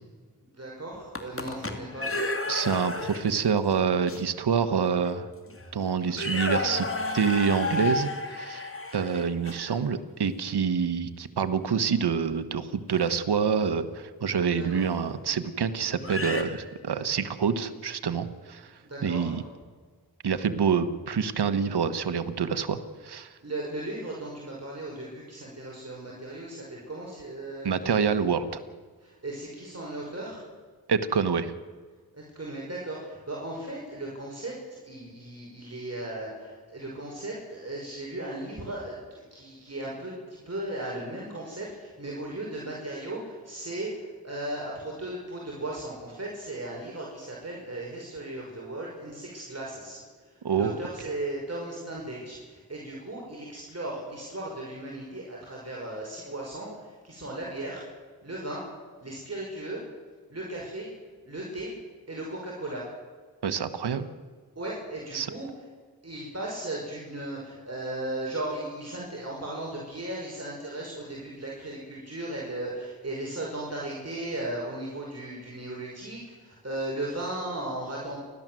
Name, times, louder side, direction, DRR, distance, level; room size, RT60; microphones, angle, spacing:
voice 1, 0.5-2.1 14.6-14.8 18.8-19.4 23.4-27.9 29.0-30.4 32.1-57.8 58.2-58.7 59.0-59.8 60.3-60.9 61.2-61.8 62.1-62.9 64.6-65.5 66.0-78.2, right 1 dB, 40° right, -3 dB, 5.7 m, -36 dB
sound 1, 0.9-3.4 4.1-4.2 5.0-5.1 5.5-5.7 6.1-9.8 12.9-13.1 14.9-15.0 16.0-16.4, left 2 dB, 35° left, 2.8 m, -32 dB
voice 2, 2.5-5.3 5.7-6.9 7.1-18.7 19.0-19.4 20.2-22.8 23.0-23.3 27.6-28.6 30.9-31.5 50.4-50.8 63.4-64.1 65.1-65.3, right 6 dB, 80° right, 10 dB, 1.4 m, -27 dB
29.5 x 12.5 x 7.7 m, 1.5 s
cardioid pair, 50°, 39 cm